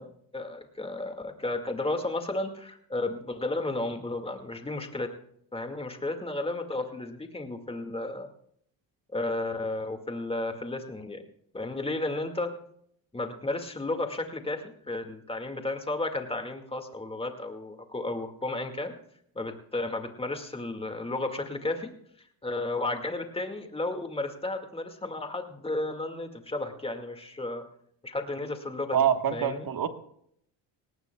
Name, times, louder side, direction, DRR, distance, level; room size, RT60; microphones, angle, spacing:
voice 1, 0.0-5.1 5.5-8.3 9.1-11.2 11.5-12.5 13.1-18.9 19.4-21.9 22.4-27.6 28.0-29.7, left 2 dB, 10° left, 5 dB, 2.0 m, -33 dB
voice 2, 28.9-29.9, right 9 dB, 50° right, 8 dB, 1.5 m, -25 dB
19.5 x 17.5 x 2.3 m, 0.68 s
cardioid pair, 105°, 45 cm